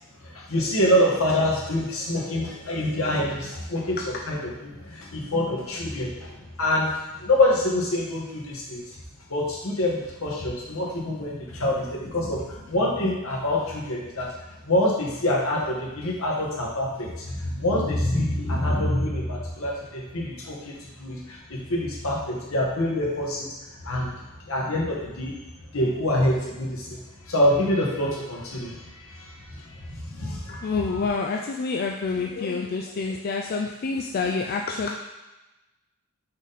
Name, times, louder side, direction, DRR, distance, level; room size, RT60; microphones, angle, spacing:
voice 1, 0.2-4.0 4.3-4.4 4.6-6.9 7.2-8.8 9.3-14.3 14.6-23.5 23.8-25.3 25.7-30.7, left 1 dB, 75° left, -3 dB, 1.6 m, -26 dB
voice 2, 30.5-35.0, left 4 dB, 45° left, 1 dB, 0.4 m, -28 dB
6.1 x 4.0 x 4.2 m, 1.1 s
head